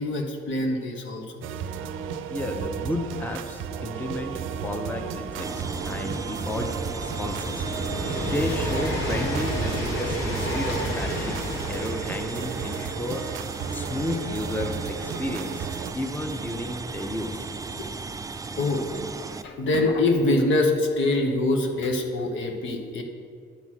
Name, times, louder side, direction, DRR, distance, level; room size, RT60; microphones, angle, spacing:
voice 1, 0.0-1.4 6.0-6.1 10.7-10.8 17.7-17.9 18.6-18.9 19.4-23.0, left 2 dB, 70° left, 3 dB, 1.1 m, -25 dB
sound 1, 1.4-15.9, right 7 dB, 85° right, 0.5 m, -34 dB
Train, 2.3-18.9 19.9-20.0, equal, 90° left, 1.5 m, -34 dB
voice 2, 2.3-5.5 5.9-7.7 8.2-13.3 13.7-15.7 15.9-17.5, left 1 dB, 10° left, 4 dB, 0.7 m, -32 dB
sound 2, 5.4-19.4, right 4 dB, 15° right, 0.3 m, -36 dB
10.0 x 4.1 x 6.1 m, 2.2 s
cardioid pair, 90°, 20 cm